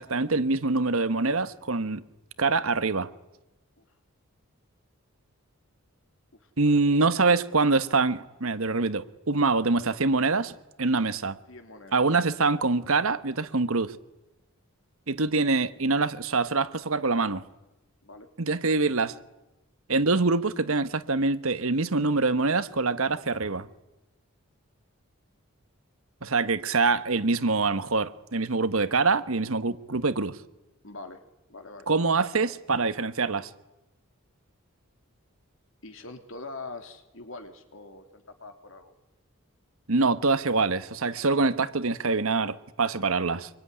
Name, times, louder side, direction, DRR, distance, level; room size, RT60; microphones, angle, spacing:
voice 1, 0.0-2.0 2.4-3.1 6.6-10.5 10.8-11.4 11.9-13.9 15.1-17.4 18.4-19.1 19.9-23.7 26.2-30.4 31.9-33.5 39.9-43.5, right 3 dB, 75° right, 1.3 m, -25 dB
voice 2, 6.3-7.3 11.5-12.2 18.0-18.3 30.8-31.2 31.5-31.9 32.4-32.6 35.8-38.9, left 3 dB, 65° left, 3.4 m, -44 dB
24.5 x 23.5 x 10.0 m
head